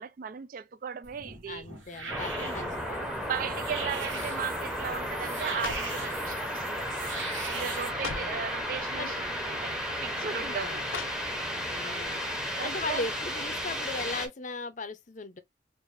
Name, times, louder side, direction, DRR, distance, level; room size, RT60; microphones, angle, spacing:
voice 1, 0.0-1.7 3.2-7.0 7.5-10.8 12.6-13.0, right 7 dB, 45° right, 0.3 m, -37 dB
sound 1, 1.0-7.9, right 4 dB, 80° right, 1.7 m, -41 dB
voice 2, 1.5-3.0 7.9-8.5 8.9-9.2 10.1-10.9 11.7-12.2 12.6-15.4, left 3 dB, 40° left, 0.6 m, -38 dB
sound 2, 2.1-14.3, equal, 5° right, 0.7 m, -34 dB
sound 3, 3.3-3.7 4.1-4.5 5.2-6.1 6.9-7.1 7.4-7.5 7.9-8.4 9.4-9.5 10.9-11.6 12.0-12.1, left 5 dB, 85° left, 0.7 m, -41 dB
4.7 x 2.5 x 2.5 m
head